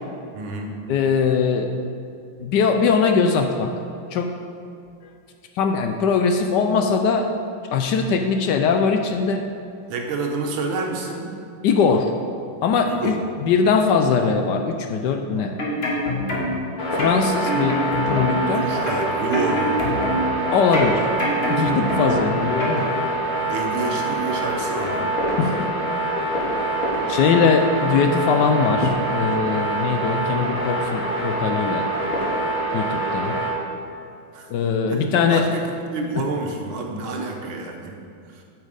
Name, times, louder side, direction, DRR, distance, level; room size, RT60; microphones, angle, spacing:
voice 1, 0.3-0.7 9.9-11.3 12.9-13.2 18.5-19.9 23.5-25.1 34.3-34.5 34.9-35.0 35.3-35.7 35.9-37.9 38.3-38.4, right 3 dB, 90° right, 2 dB, 1.8 m, -28 dB
voice 2, 0.9-1.7 2.4-3.7 4.1-4.3 5.6-7.3 7.7-9.4 11.6-12.1 12.6-15.5 16.9-17.8 18.1-18.6 20.5-21.1 21.5-22.9 25.4-25.6 27.1-31.9 32.7-33.4 34.5-35.4, left 5 dB, 75° left, 5 dB, 1.1 m, -21 dB
sound 1, 15.4-16.7 17.0-18.5 18.9-20.4 20.7-22.3 22.6-22.8, left 1 dB, 35° left, 1.6 m, -25 dB
sound 2, 16.8-33.5, right 2 dB, 50° left, 2.0 m, -25 dB
8.8 x 6.4 x 5.0 m, 2.5 s
omnidirectional pair, 2.2 m